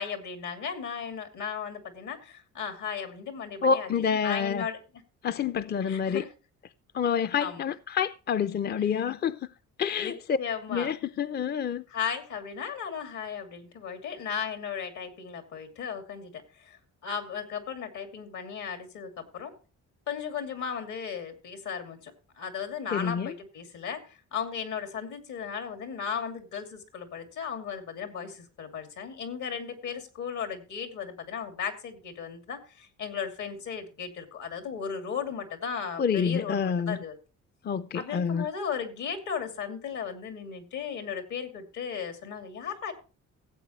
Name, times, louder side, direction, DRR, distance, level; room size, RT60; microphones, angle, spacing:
voice 1, 0.0-4.8 5.8-6.3 7.4-7.6 10.0-10.9 11.9-19.5 20.1-37.2 37.9-42.9, left 7 dB, 75° left, 2.7 m, -36 dB
voice 2, 3.6-4.7 5.2-6.2 6.9-9.5 9.8-10.4 10.7-11.8 22.9-23.3 36.0-37.0 37.6-38.5, left 6 dB, 35° left, 0.5 m, -28 dB
15.5 x 8.2 x 3.1 m
cardioid pair, 90°, 30 cm